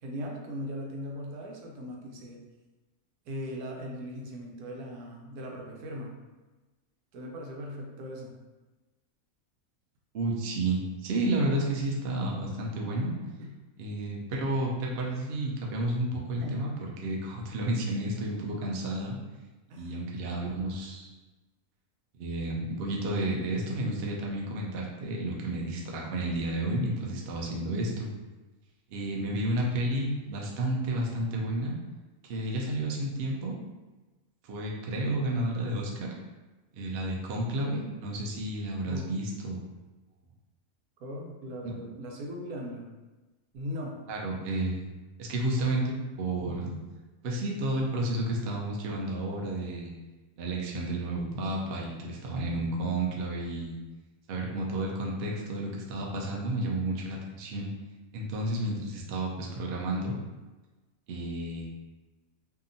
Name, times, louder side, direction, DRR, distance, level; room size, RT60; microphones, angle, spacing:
voice 1, 0.0-2.4 3.3-6.1 7.1-8.3 13.4-13.5 16.4-16.7 19.7-19.9 38.9-39.1 41.0-42.9 43.5-44.0, equal, 90° right, 0 dB, 1.1 m, -39 dB
voice 2, 10.1-13.1 13.8-16.7 17.0-19.2 19.7-21.1 22.1-28.1 28.9-31.7 32.2-33.5 34.4-36.1 36.7-39.6 41.6-41.8 44.1-44.9 45.2-46.8 47.2-49.9 50.4-53.8 54.3-57.7 58.1-60.2 61.1-61.8, right 1 dB, 65° right, -2 dB, 0.6 m, -31 dB
2.7 x 2.4 x 2.6 m, 1.2 s
omnidirectional pair, 1.5 m